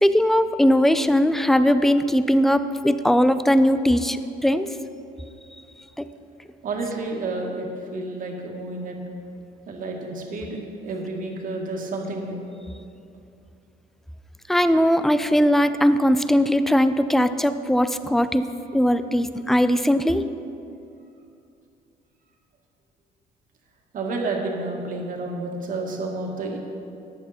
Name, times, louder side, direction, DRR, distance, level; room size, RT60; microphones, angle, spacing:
voice 1, 0.0-4.2 4.4-4.7 14.5-20.2, equal, ahead, 12 dB, 0.4 m, -19 dB
voice 2, 6.6-9.0 9.7-12.4 23.9-26.6, right 2 dB, 50° right, 0 dB, 1.9 m, -30 dB
13.5 x 9.2 x 4.3 m, 2.6 s
cardioid pair, 110°, 17 cm